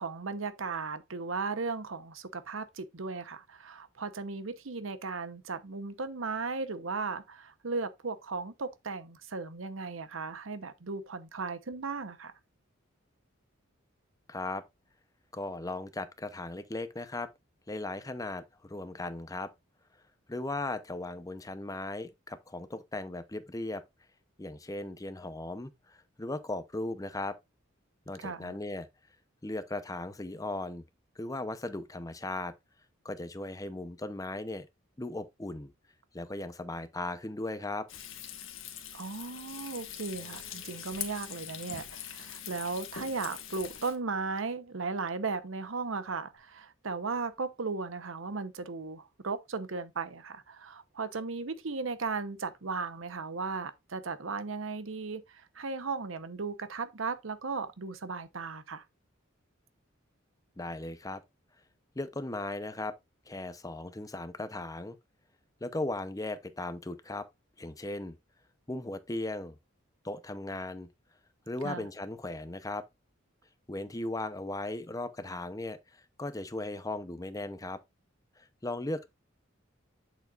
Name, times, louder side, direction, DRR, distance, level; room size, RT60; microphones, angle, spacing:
voice 1, 0.0-12.3 28.2-28.6 38.9-58.8 71.6-71.9, right 4 dB, 75° right, 0.9 m, -36 dB
voice 2, 14.3-14.6 15.3-17.3 17.7-19.5 20.3-23.8 24.4-27.4 28.1-28.9 29.4-30.8 31.2-32.5 33.0-34.7 35.0-35.7 36.1-37.9 60.6-61.2 62.0-63.0 63.3-65.0 65.6-67.3 67.6-68.2 68.7-69.6 70.0-70.9 71.5-72.8 73.7-75.8 76.2-77.8 78.4-79.1, left 2 dB, 15° left, 0.7 m, -37 dB
Frying (food), 37.9-43.9, left 10 dB, 75° left, 1.4 m, -43 dB
Bass guitar, 40.1-46.4, right 1 dB, 35° left, 2.1 m, -66 dB
8.2 x 6.8 x 2.4 m
head